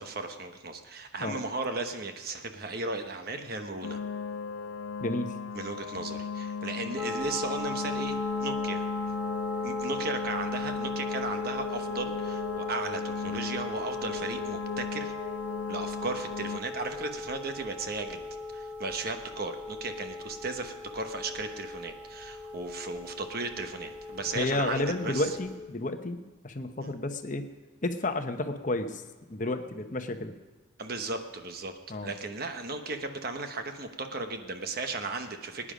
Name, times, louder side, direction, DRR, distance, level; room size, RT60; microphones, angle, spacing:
voice 1, 0.0-4.0 5.5-8.8 9.6-15.1 15.7-18.2 18.5-25.4 26.8-26.9 30.8-35.7, right 3 dB, 50° right, 6 dB, 1.1 m, -36 dB
sound 1, 3.8-16.6, left 6 dB, 85° left, 0.4 m, -36 dB
voice 2, 5.0-5.3 24.3-27.4 27.8-29.0 29.3-30.3 31.9-32.1, left 2 dB, 40° left, 7 dB, 0.9 m, -31 dB
sound 2, 7.0-25.6, left 1 dB, 10° right, 1.3 m, -39 dB
20.0 x 9.9 x 5.1 m, 1.3 s
head